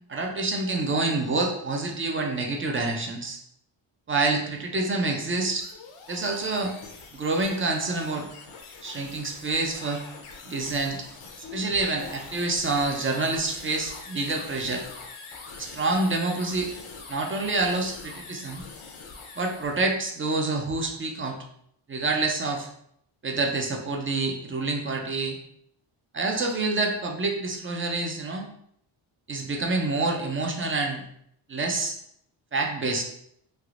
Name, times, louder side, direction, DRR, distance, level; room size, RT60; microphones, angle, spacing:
voice 1, 0.1-3.4 4.1-5.7 6.1-6.7 7.1-8.3 8.8-10.0 10.5-11.1 11.5-14.8 15.6-16.7 17.1-18.6 19.4-21.4 21.9-22.7 23.2-25.4 26.1-28.4 29.3-31.0 31.5-32.0 32.5-33.0, right 3 dB, 30° right, 2 dB, 0.3 m, -27 dB
sound 1, 5.2-19.9, left 4 dB, 75° left, 0.7 m, -44 dB
3.3 x 2.7 x 2.4 m, 0.72 s
wide cardioid pair, 125°, 50 cm